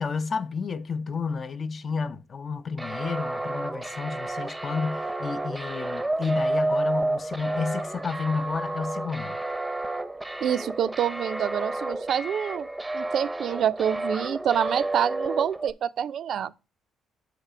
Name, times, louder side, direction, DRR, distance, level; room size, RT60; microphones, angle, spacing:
voice 1, 0.0-9.4, left 5 dB, 45° left, 0.6 m, -31 dB
sound 1, 2.8-15.7, right 2 dB, 10° right, 0.6 m, -31 dB
voice 2, 10.4-12.7 12.9-16.5, right 9 dB, 65° right, 0.4 m, -27 dB
6.7 x 4.7 x 5.0 m
cardioid pair, 90°, 0 cm